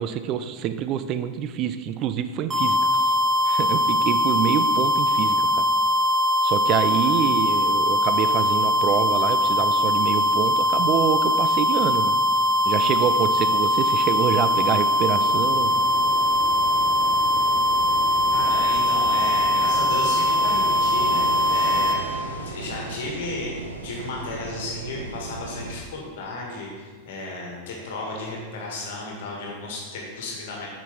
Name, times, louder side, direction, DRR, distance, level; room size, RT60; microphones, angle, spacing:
voice 1, 0.0-3.2 3.5-5.7 6.4-12.2 12.7-15.7, right 9 dB, 35° right, 11 dB, 0.4 m, -26 dB
sound 1, 2.5-22.0, left 1 dB, 20° right, 1.4 m, -21 dB
sound 2, 15.2-25.7, right 3 dB, 70° right, 0.8 m, -35 dB
voice 2, 18.3-30.7, left 2 dB, 55° left, -1 dB, 1.8 m, -34 dB
8.2 x 6.1 x 3.5 m, 1.5 s
figure-of-eight pair, 90°, 0 cm